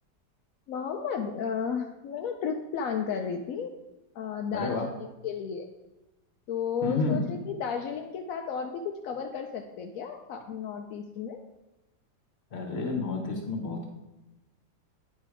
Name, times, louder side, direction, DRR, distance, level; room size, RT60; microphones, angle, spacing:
voice 1, 0.7-3.7 4.2-4.7 5.2-5.7 6.5-11.4, left 6 dB, 70° left, 4 dB, 0.8 m, -33 dB
voice 2, 4.5-4.9 6.8-7.2 12.5-13.9, left 3 dB, 40° left, 3 dB, 1.3 m, -30 dB
9.2 x 4.2 x 4.8 m, 1.0 s
omnidirectional pair, 1.9 m